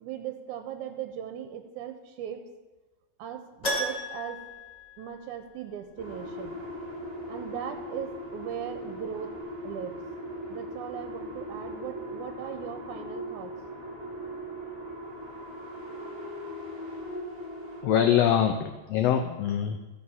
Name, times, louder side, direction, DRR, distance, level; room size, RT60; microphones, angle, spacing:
voice 1, 0.0-2.4 3.2-4.4 5.0-6.6 7.3-9.4 9.6-10.0 10.5-13.5, right 9 dB, 85° right, 6 dB, 2.1 m, -38 dB
Keyboard (musical), 3.6-5.7 5.9-6.0 8.7-8.8 9.1-9.2, equal, 40° left, 0.5 m, -34 dB
sound 1, 6.0-17.8, equal, 20° right, 3.9 m, -39 dB
voice 2, 17.8-19.8, left 9 dB, 85° left, 5 dB, 1.4 m, -24 dB
14.5 x 4.8 x 5.5 m, 1.2 s
omnidirectional pair, 3.5 m